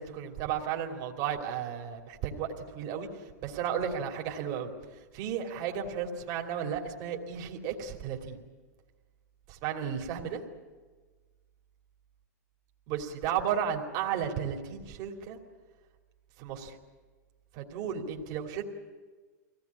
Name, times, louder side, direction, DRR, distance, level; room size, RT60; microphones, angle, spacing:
voice 1, 0.0-4.7 5.1-8.4 9.5-10.4 12.9-15.4 16.4-16.7 17.5-18.6, right 8 dB, 45° right, 2 dB, 2.9 m, -34 dB
23.5 x 17.5 x 9.7 m, 1.4 s
hypercardioid pair, 120°, 9 cm